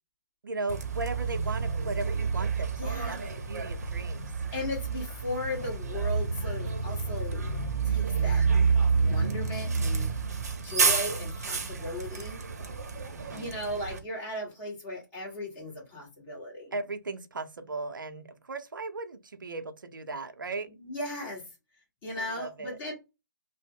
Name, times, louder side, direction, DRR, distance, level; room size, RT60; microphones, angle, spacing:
voice 1, 0.4-4.3 13.1-13.5 16.7-20.7 22.2-22.8, right 3 dB, 75° right, 0.6 m, -37 dB
Bus, 0.7-14.0, right 5 dB, 50° right, 0.8 m, -29 dB
voice 2, 2.8-3.3 4.5-7.4 7.8-8.4 9.0-10.1 10.6-12.4 13.3-16.7 20.8-21.4 22.0-22.9, left 1 dB, 20° left, 1.5 m, -37 dB
2.8 x 2.1 x 3.7 m
figure-of-eight pair, 145°, 11 cm